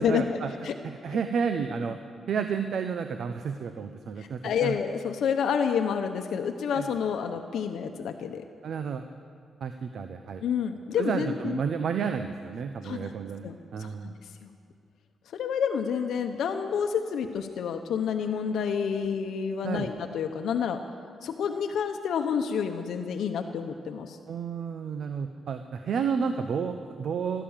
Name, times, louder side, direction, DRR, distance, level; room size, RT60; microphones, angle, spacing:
voice 1, 0.0-0.5 0.8-2.0 2.3-4.8 6.7-6.9 8.6-9.0 9.6-10.4 11.0-14.1 19.6-19.9 24.3-27.4, right 6 dB, 60° right, 8 dB, 0.7 m, -31 dB
voice 2, 4.2-8.4 10.4-11.6 12.8-13.1 13.4-13.5 13.8-14.1 15.3-20.8 21.2-24.2, left 7 dB, 75° left, 6 dB, 0.8 m, -29 dB
16.5 x 12.0 x 7.3 m, 2.3 s
wide cardioid pair, 155°, 0 cm